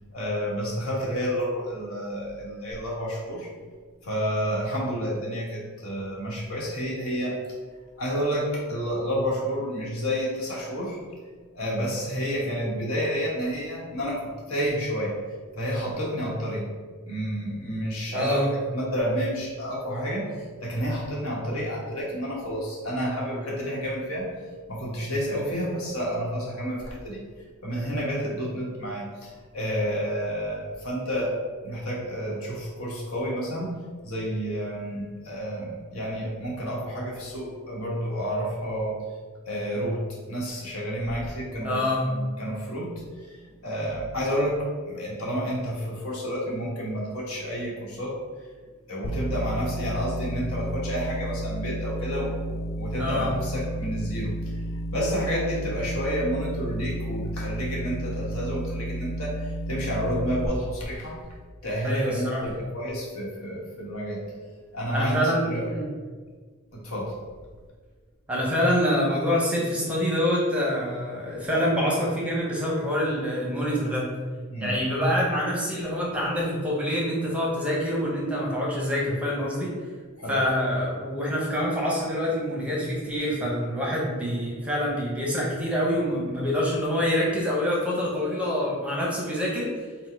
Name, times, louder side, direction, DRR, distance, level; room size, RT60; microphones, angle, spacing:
voice 1, 0.1-3.5 4.0-7.4 8.0-11.0 11.5-15.2 15.5-16.7 17.1-24.3 24.7-27.2 27.6-31.4 31.6-33.7 34.0-39.0 39.5-42.9 43.2-48.2 48.9-61.2 61.6-64.2 64.7-65.7 66.7-67.2 74.5-74.8 80.2-80.4, equal, 70° left, -4 dB, 1.2 m, -30 dB
voice 2, 18.1-18.5 41.6-42.1 53.0-53.3 61.8-62.4 64.9-65.9 68.3-74.1 74.6-79.7 80.3-89.7, equal, 5° right, -4 dB, 0.7 m, -26 dB
sound 1, 49.0-60.5, equal, 45° left, 0.3 m, -32 dB
4.3 x 2.1 x 4.4 m, 1.5 s
head